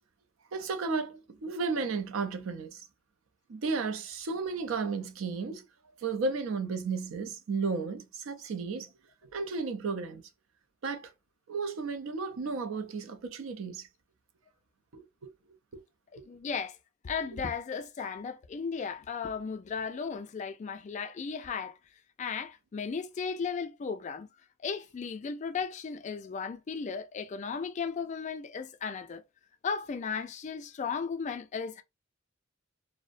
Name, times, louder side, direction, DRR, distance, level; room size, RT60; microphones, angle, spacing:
voice 1, 0.5-2.8 3.5-5.6 6.0-8.9 9.3-10.2 10.8-11.1 11.5-13.9 14.9-15.3 15.7-15.8 16.2-16.3, right 4 dB, 85° right, 0.5 m, -33 dB
voice 2, 16.2-16.8 17.0-21.8 22.2-24.3 24.6-29.2 29.6-31.8, left 5 dB, 35° left, 0.3 m, -35 dB
2.5 x 2.0 x 2.4 m
head